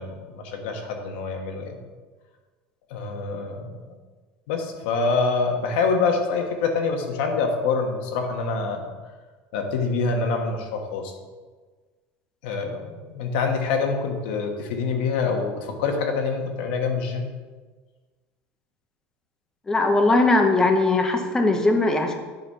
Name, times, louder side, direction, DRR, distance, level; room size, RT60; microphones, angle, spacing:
voice 1, 0.0-1.8 2.9-3.8 4.5-8.9 9.5-11.1 12.4-17.3, left 4 dB, 80° left, 3 dB, 1.4 m, -26 dB
voice 2, 19.7-22.2, left 2 dB, 10° left, 4 dB, 0.8 m, -19 dB
9.3 x 4.2 x 5.5 m, 1.4 s
cardioid pair, 165°, 5 cm